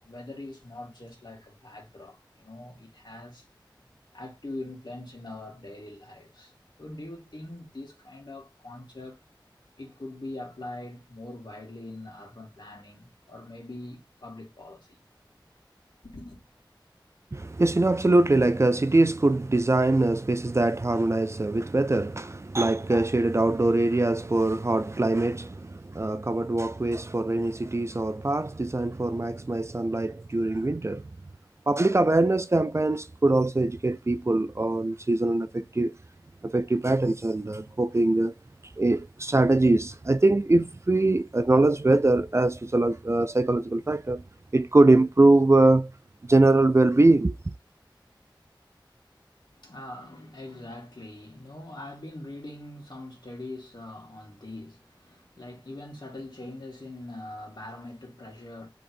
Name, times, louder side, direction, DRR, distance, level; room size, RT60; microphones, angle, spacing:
voice 1, 0.0-3.5 4.1-9.2 9.8-14.9 16.0-16.4 49.5-58.7, left 2 dB, 65° left, 2.2 m, -42 dB
voice 2, 17.3-31.1 31.7-35.9 36.4-38.3 38.8-44.2 44.5-45.9 46.2-47.4, right 2 dB, 35° right, 0.4 m, -23 dB
3.8 x 3.0 x 4.2 m
wide cardioid pair, 45°, 8 cm